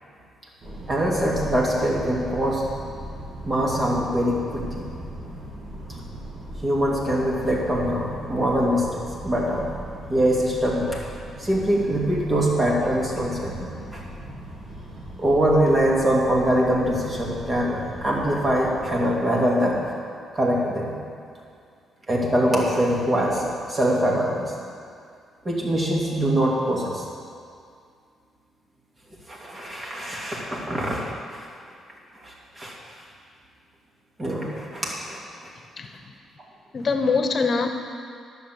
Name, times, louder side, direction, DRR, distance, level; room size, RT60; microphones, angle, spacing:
sound 1, 0.6-19.1, right 1 dB, 50° right, 2.8 m, -38 dB
voice 1, 0.9-2.6 3.5-4.9 6.6-9.7 10.1-11.0 11.4-14.0 15.2-19.8 20.3-21.0 22.1-24.5 25.4-27.0 29.3-31.0 31.3-31.4 32.2-32.7 34.2-35.2, equal, 30° right, -4 dB, 2.8 m, -23 dB
voice 2, 35.8-36.1 36.7-37.7, left 4 dB, 45° left, 5 dB, 1.2 m, -23 dB
10.5 x 6.5 x 7.8 m, 2.3 s
cardioid pair, 90°, 0 cm